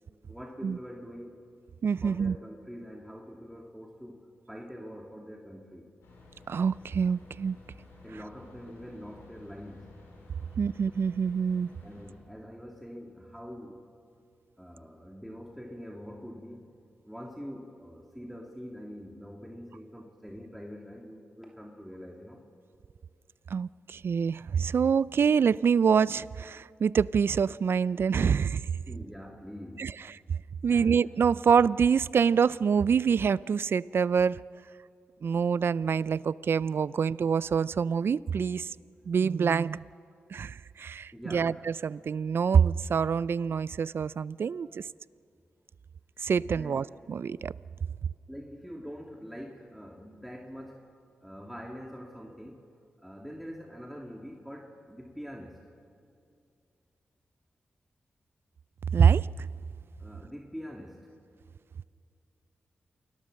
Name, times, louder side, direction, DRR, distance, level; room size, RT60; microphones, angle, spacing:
voice 1, 0.3-1.5 2.0-5.9 8.0-10.0 11.8-13.9 14.6-16.7 17.0-22.5 28.9-29.9 30.7-31.0 41.1-41.6 46.5-46.9 48.3-50.9 51.2-52.6 53.0-55.7 60.0-61.1, equal, ahead, 2.8 m, -44 dB
voice 2, 1.8-2.4 6.5-7.6 10.6-11.7 23.5-28.7 29.8-29.9 30.3-30.4 30.6-34.4 35.2-38.7 39.1-39.8 40.3-44.9 46.2-47.5 58.9-59.5, right 6 dB, 65° right, 0.5 m, -26 dB
sound 1, 6.0-12.1, left 2 dB, 90° left, 7.4 m, -53 dB
29.0 x 21.0 x 6.5 m
supercardioid pair, 45°, 4 cm